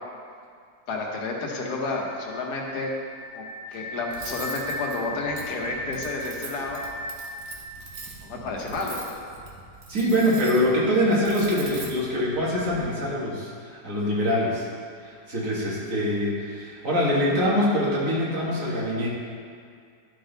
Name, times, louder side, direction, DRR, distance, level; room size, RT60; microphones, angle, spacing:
voice 1, 0.9-2.9 3.3-6.8 8.2-9.1, left 3 dB, 70° left, -1 dB, 1.5 m, -31 dB
sound 1, 1.8-8.7, equal, 20° left, 1.4 m, -38 dB
Cutlery silverware, 4.1-12.8, right 4 dB, 70° right, 1.4 m, -42 dB
voice 2, 9.9-13.5 13.8-14.6 15.0-19.1, equal, 50° right, -5 dB, 1.8 m, -24 dB
11.0 x 3.8 x 3.9 m, 2.2 s
omnidirectional pair, 1.8 m